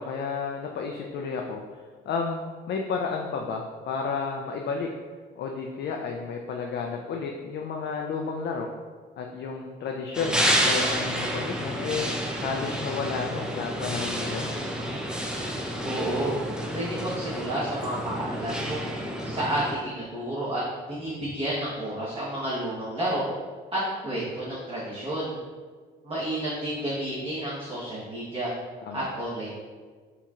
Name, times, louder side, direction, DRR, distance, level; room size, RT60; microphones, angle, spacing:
voice 1, 0.0-1.8 2.1-2.4 2.7-4.9 5.4-8.7 9.2-14.5 28.8-29.1, left 5 dB, 55° left, 1 dB, 0.4 m, -32 dB
sound 1, 10.1-19.8, equal, 5° right, 0.5 m, -29 dB
voice 2, 15.8-16.4 16.7-18.9 19.2-20.6 20.9-23.3 23.7-25.4 26.0-28.5 28.9-29.5, right 1 dB, 25° right, -9 dB, 1.1 m, -30 dB
4.3 x 2.8 x 2.4 m, 1.5 s
supercardioid pair, 65°, 21 cm